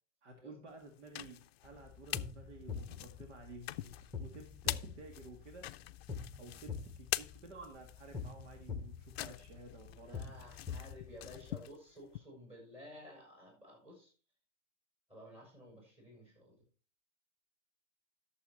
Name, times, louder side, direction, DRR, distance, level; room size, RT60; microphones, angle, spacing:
voice 1, 0.2-3.9 4.2-5.7 6.3-10.4, right 2 dB, 65° right, 3 dB, 2.3 m, -53 dB
sound 1, 0.8-2.3 2.7-12.2, left 14 dB, 55° left, 0.5 m, -44 dB
sound 2, 1.6-11.6, left 6 dB, 10° left, 1.1 m, -46 dB
voice 2, 9.8-14.1 15.1-16.6, left 1 dB, 15° right, -1 dB, 6.5 m, -54 dB
11.5 x 7.1 x 4.4 m, 0.36 s
hypercardioid pair, 135°, 37 cm